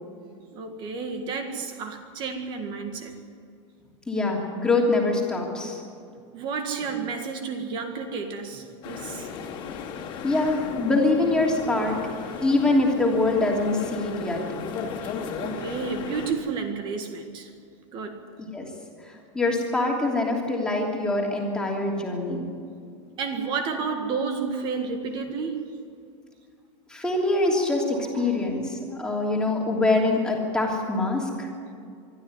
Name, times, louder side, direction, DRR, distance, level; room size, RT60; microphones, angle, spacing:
voice 1, 0.5-3.1 6.3-9.3 15.0-15.1 15.4-17.5 17.9-18.3 23.2-25.7 27.9-28.5 31.1-31.3, right 5 dB, 30° right, 6 dB, 1.9 m, -31 dB
voice 2, 4.1-5.8 10.2-12.0 12.4-14.4 18.4-18.7 19.3-22.5 26.9-31.5, left 2 dB, 5° left, -1 dB, 3.0 m, -24 dB
sound 1, 8.8-16.3, left 6 dB, 30° left, 2.6 m, -35 dB
23.5 x 13.0 x 9.7 m, 2.3 s
supercardioid pair, 170°, 16 cm